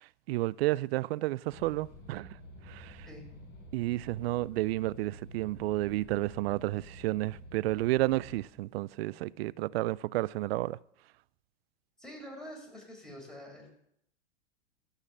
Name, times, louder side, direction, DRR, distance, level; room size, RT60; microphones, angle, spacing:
voice 1, 0.3-2.3 2.7-3.0 3.7-10.8, right 18 dB, 60° right, 0.5 m, -31 dB
sound 1, 1.5-8.4, equal, 30° left, 4.3 m, -50 dB
voice 2, 12.0-13.7, equal, ahead, 4.8 m, -46 dB
14.5 x 5.7 x 7.2 m
hypercardioid pair, 110°, 35 cm